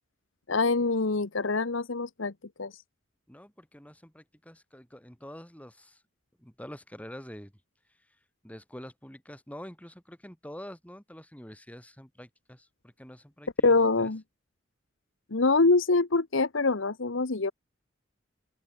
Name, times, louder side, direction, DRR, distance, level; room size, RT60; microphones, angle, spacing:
voice 1, 0.5-2.3 2.6-2.8 13.6-14.2 15.3-17.5, left 3 dB, 70° left, 1.1 m, -25 dB
voice 2, 3.3-6.0 6.4-7.5 8.4-14.1, equal, 5° left, 3.5 m, -46 dB
open air
head